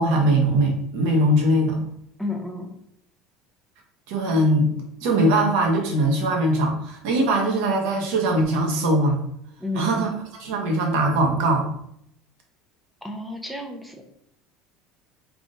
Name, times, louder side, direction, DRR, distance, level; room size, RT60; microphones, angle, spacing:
voice 1, 0.0-1.8 4.1-4.7 5.0-9.2 9.7-10.1 10.4-11.7, right 1 dB, 75° right, 1 dB, 1.0 m, -21 dB
voice 2, 2.2-2.7 9.6-10.1 13.0-14.0, left 2 dB, ahead, 2 dB, 0.7 m, -31 dB
3.5 x 2.4 x 3.9 m, 0.71 s
cardioid pair, 135°, 0 cm